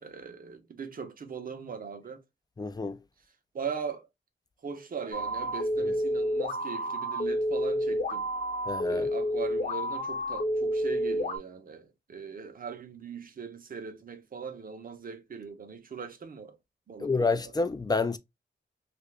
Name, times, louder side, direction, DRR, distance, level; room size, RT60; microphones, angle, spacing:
voice 1, 0.0-2.2 3.5-4.1 4.6-8.2 8.9-16.6 16.9-17.1, right 6 dB, 45° right, 0.7 m, -40 dB
voice 2, 2.6-3.0 5.8-5.9 8.7-9.1 17.0-18.2, left 3 dB, 20° left, 0.3 m, -29 dB
sound 1, 5.1-11.4, equal, 50° left, 0.9 m, -30 dB
2.8 x 2.5 x 3.2 m
wide cardioid pair, 100°, 20 cm